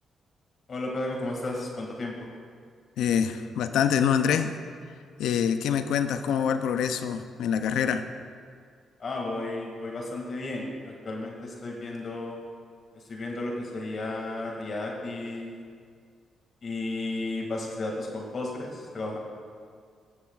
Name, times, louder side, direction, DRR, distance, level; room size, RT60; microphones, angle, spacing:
voice 1, 0.7-2.3 9.0-12.4 13.1-15.6 16.6-19.2, left 2 dB, 55° left, 0 dB, 1.9 m, -33 dB
voice 2, 3.0-4.6 5.2-8.0, left 8 dB, 80° left, 10 dB, 0.4 m, -25 dB
16.0 x 7.1 x 2.3 m, 2.1 s
supercardioid pair, 60°, 0 cm